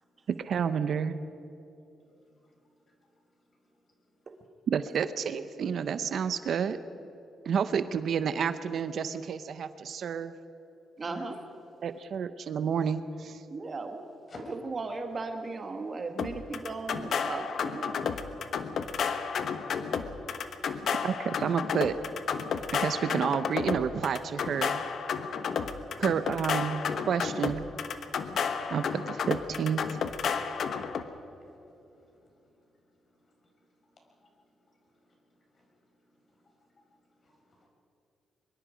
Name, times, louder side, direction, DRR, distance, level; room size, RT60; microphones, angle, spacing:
voice 1, 0.4-1.2 4.7-6.8 7.5-10.3 11.8-13.4 21.0-21.9 22.7-24.8 26.0-27.6 28.7-29.8, right 7 dB, 60° right, 12 dB, 0.7 m, -30 dB
voice 2, 11.0-11.4 13.5-14.1 14.5-18.0, right 3 dB, 35° right, 5 dB, 1.5 m, -36 dB
sound 1, 16.2-31.0, left 6 dB, 60° left, 1.2 m, -32 dB
voice 3, 37.2-37.7, left 1 dB, 40° left, 0 dB, 5.1 m, -47 dB
23.5 x 22.5 x 5.1 m, 2.8 s
cardioid pair, 120°, 0 cm